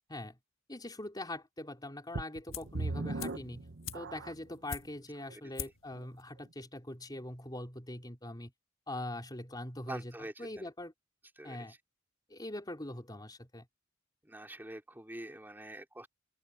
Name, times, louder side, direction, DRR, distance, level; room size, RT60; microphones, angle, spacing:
voice 1, 0.7-3.7 3.9-8.5 8.9-10.9 11.4-11.7 12.3-13.7, left 1 dB, 20° left, 4.3 m, -42 dB
sound 1, 2.1-4.6 5.2-5.3 5.9-6.0, right 2 dB, 60° right, 1.0 m, -39 dB
sound 2, 2.5-2.8 3.2-5.2 5.5-5.9 6.2-6.3, left 8 dB, 75° left, 1.6 m, -44 dB
voice 2, 9.9-10.7 11.4-11.7 14.2-16.1, right 1 dB, 10° right, 3.8 m, -45 dB
open air
head